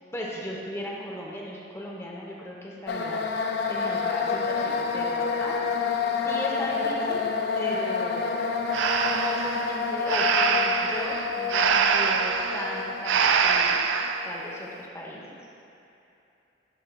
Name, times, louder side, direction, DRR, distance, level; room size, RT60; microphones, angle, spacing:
voice 1, 0.1-3.2 3.7-5.6 6.2-7.3 7.5-8.4 9.1-13.9 14.2-15.2, left 1 dB, 15° left, -3 dB, 0.9 m, -36 dB
sound 1, 2.9-14.7, left 5 dB, 60° left, 0.4 m, -29 dB
Breathing, 8.7-14.3, right 6 dB, 85° right, 0.4 m, -24 dB
12.0 x 5.6 x 2.3 m, 2.8 s
head